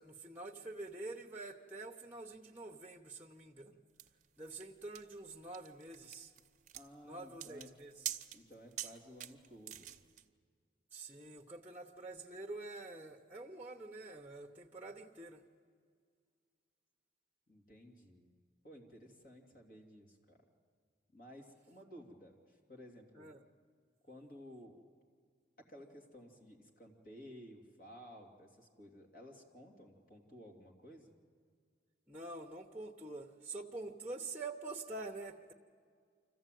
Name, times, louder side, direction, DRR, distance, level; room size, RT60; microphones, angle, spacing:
voice 1, 0.0-3.8 4.4-6.3 7.0-8.0 10.9-15.4 23.1-23.4 32.1-35.5, right 2 dB, 10° right, 1 dB, 0.9 m, -47 dB
sound 1, 4.0-10.2, right 11 dB, 40° right, 0.7 m, -46 dB
voice 2, 6.7-7.7 8.3-10.0 17.5-18.3 18.6-20.4 21.1-23.3 24.0-24.8 25.6-31.1, equal, 50° left, 1 dB, 2.8 m, -55 dB
25.5 x 15.0 x 9.2 m, 2.1 s
head